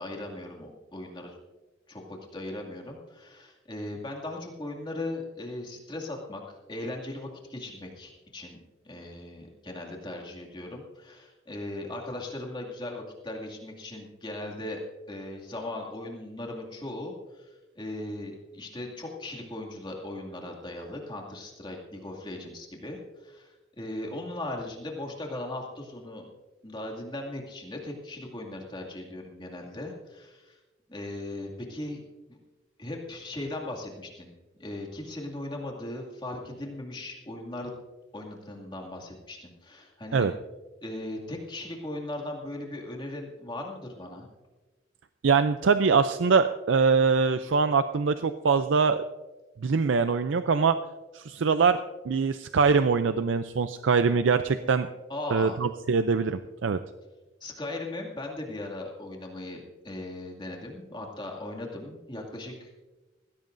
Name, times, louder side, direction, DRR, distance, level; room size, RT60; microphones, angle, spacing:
voice 1, 0.0-1.4 1.9-6.4 6.7-14.8 15.1-26.3 26.6-30.6 30.9-32.0 32.8-34.3 34.6-37.7 38.1-40.3 40.8-44.3 55.1-55.6 57.4-62.7, left 1 dB, 25° left, 0 dB, 2.2 m, -38 dB
voice 2, 45.2-49.0 49.6-50.8 51.1-51.8 52.1-54.9 55.3-56.8, right 5 dB, 80° right, 10 dB, 0.5 m, -23 dB
19.5 x 16.0 x 2.6 m, 1.2 s
head